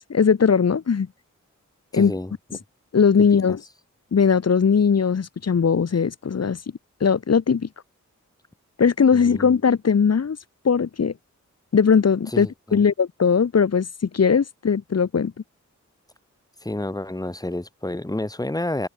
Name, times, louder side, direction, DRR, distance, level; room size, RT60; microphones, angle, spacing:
voice 1, 0.1-1.1 1.9-2.1 2.9-3.6 4.1-6.6 7.0-7.7 8.8-10.4 10.6-11.1 11.7-13.9 14.1-15.3, left 6 dB, 55° left, 1.0 m, -19 dB
voice 2, 1.9-2.3 9.1-9.5 12.3-12.8 16.6-18.9, left 1 dB, 10° left, 1.7 m, -29 dB
wide cardioid pair, 70°, 31 cm